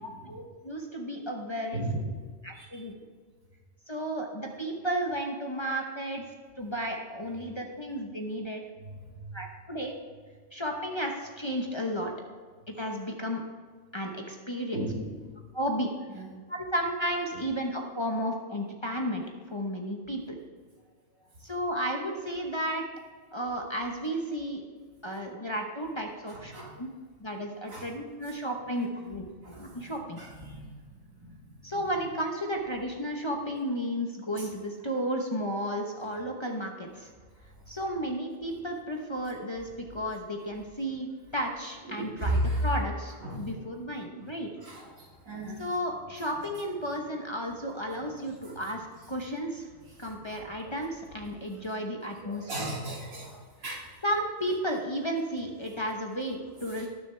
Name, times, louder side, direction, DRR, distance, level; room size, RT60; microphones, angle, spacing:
voice 1, 0.0-1.8 2.4-2.9 3.9-6.2 6.6-8.6 9.3-10.0 10.5-12.1 12.7-13.4 13.9-14.9 15.5-15.9 16.5-20.4 21.4-22.8 23.3-24.6 25.0-26.9 27.2-30.2 31.6-37.1 37.7-44.5 45.6-49.7 50.0-52.8 54.0-56.9, equal, 25° left, 0 dB, 0.9 m, -33 dB
voice 2, 14.7-15.1 26.5-26.7 27.7-27.8 29.4-29.7 30.4-30.8 41.9-42.4 43.2-43.4 44.6-44.8 45.3-45.6 50.3-50.7 52.2-53.4 53.6-53.9, right 2 dB, 90° right, -3 dB, 2.6 m, -34 dB
19.0 x 6.9 x 3.3 m, 1.5 s
omnidirectional pair, 1.4 m